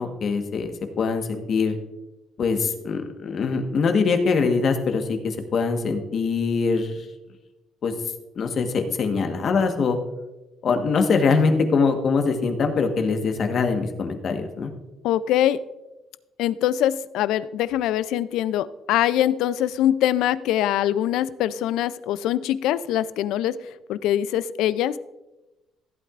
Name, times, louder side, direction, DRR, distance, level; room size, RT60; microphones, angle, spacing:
voice 1, 0.0-1.7 2.4-7.1 7.8-7.9 8.4-10.0 10.6-14.7, left 4 dB, 50° left, 6 dB, 1.3 m, -23 dB
voice 2, 15.0-15.6 16.4-23.6 23.9-25.0, left 12 dB, 85° left, 17 dB, 0.4 m, -23 dB
15.0 x 8.5 x 2.5 m, 1.0 s
cardioid pair, 110°, 0 cm